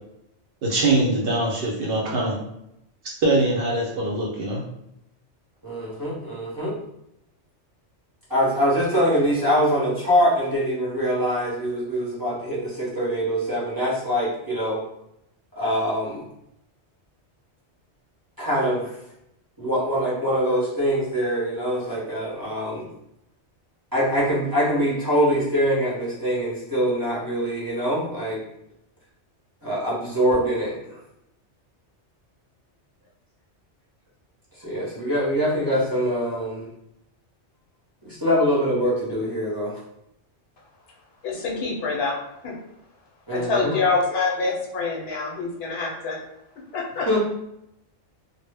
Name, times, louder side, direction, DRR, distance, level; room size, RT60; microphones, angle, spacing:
voice 1, 0.6-2.4 3.2-4.6, right 2 dB, 60° right, -3 dB, 0.7 m, -22 dB
voice 2, 5.6-6.8 8.3-14.8 15.6-16.2 18.4-18.9 19.6-22.8 23.9-28.4 29.6-31.0 34.6-36.7 38.0-39.7 43.3-43.8 47.1-47.2, equal, 20° right, -8 dB, 0.7 m, -23 dB
voice 3, 41.2-42.2 42.4-42.5 43.3-46.2 46.7-47.1, left 4 dB, 65° left, -2 dB, 0.8 m, -25 dB
2.1 x 2.0 x 3.2 m, 0.81 s
omnidirectional pair, 1.2 m